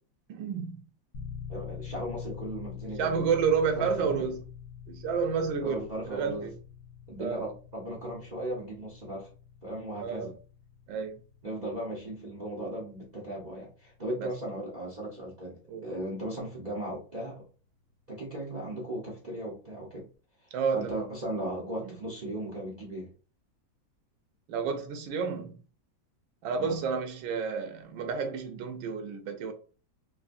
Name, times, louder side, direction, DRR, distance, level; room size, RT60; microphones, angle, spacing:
voice 1, 0.3-0.8 3.0-4.4 4.9-6.5 7.2-7.4 10.0-10.3 10.9-11.2 14.2-14.3 15.7-15.9 20.5-21.0 24.5-25.6 26.4-29.5, right 6 dB, 90° right, 1.4 m, -30 dB
sound 1, 1.1-17.9, left 8 dB, 80° left, 1.5 m, -47 dB
voice 2, 1.5-3.2 3.7-4.3 5.6-6.5 7.1-9.3 9.6-10.3 11.4-17.4 18.1-20.0 20.4-23.1 26.5-26.8, right 1 dB, 70° right, 0.4 m, -37 dB
3.8 x 2.6 x 2.5 m
omnidirectional pair, 2.1 m